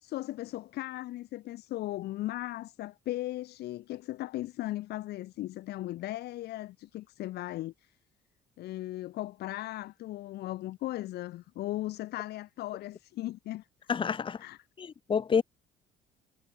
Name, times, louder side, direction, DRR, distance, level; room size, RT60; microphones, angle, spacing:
voice 1, 0.0-7.9 8.6-13.9 14.4-14.6, left 16 dB, 75° left, 2.1 m, -37 dB
voice 2, 13.9-14.4 14.8-15.4, left 6 dB, 30° left, 0.9 m, -28 dB
cardioid pair, 110°, 17 cm